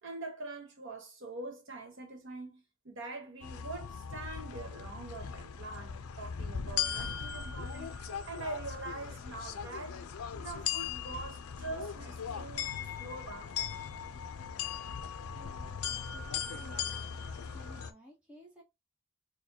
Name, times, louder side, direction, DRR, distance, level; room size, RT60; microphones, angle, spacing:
voice 1, 0.0-7.9 8.3-10.0 10.3-13.7, right 2 dB, 55° right, 1.1 m, -44 dB
sound 1, 3.4-17.9, left 7 dB, 75° left, 0.5 m, -39 dB
voice 2, 15.3-17.1 17.5-18.6, equal, 5° right, 1.0 m, -55 dB
4.6 x 2.2 x 2.8 m
head